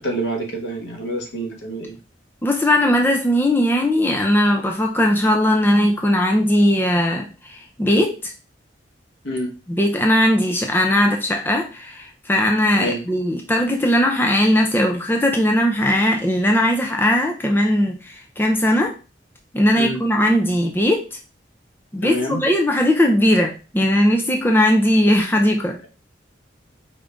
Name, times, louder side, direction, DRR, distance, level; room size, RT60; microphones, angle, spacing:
voice 1, 0.0-2.0 9.2-9.5 12.7-13.0 19.8-20.0 22.0-22.4, equal, 75° left, 2 dB, 1.2 m, -27 dB
voice 2, 2.4-8.3 9.7-18.9 19.5-21.1 21.9-25.8, left 1 dB, 10° left, 2 dB, 0.5 m, -18 dB
4.9 x 2.6 x 3.4 m, 0.33 s
head